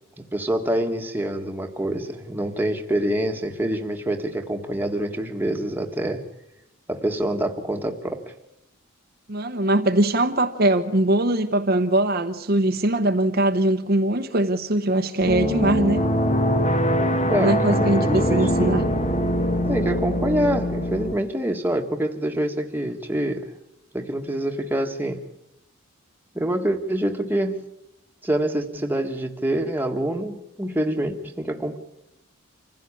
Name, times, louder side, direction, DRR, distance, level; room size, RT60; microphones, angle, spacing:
voice 1, 0.3-6.2 6.9-8.2 17.3-18.5 19.7-23.5 23.9-25.2 26.4-27.6 28.2-31.8, right 1 dB, 10° right, 1.6 m, -26 dB
voice 2, 9.3-16.1 17.4-18.9, right 1 dB, 45° right, 1.0 m, -21 dB
sound 1, 15.2-21.1, equal, 35° left, 1.6 m, -22 dB
26.0 x 15.5 x 8.6 m
head